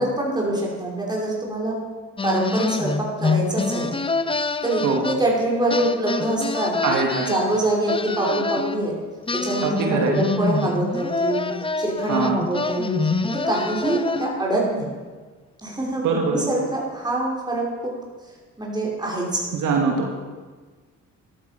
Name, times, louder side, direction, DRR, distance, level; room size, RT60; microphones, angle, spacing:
voice 1, 0.0-1.8 2.2-3.9 4.6-6.7 7.2-8.9 9.3-11.5 11.8-13.0 13.2-14.9 15.6-17.9 18.6-19.4, right 1 dB, 15° right, -3 dB, 5.5 m, -24 dB
sound 1, 2.2-5.4 5.7-8.8 9.3-14.5, left 4 dB, 20° left, 0.8 m, -26 dB
voice 2, 6.8-7.3 9.6-10.2 12.1-12.4 16.0-16.4 19.5-20.1, right 4 dB, 80° right, 1 dB, 2.5 m, -22 dB
14.5 x 12.5 x 6.0 m, 1.4 s
cardioid pair, 90°, 30 cm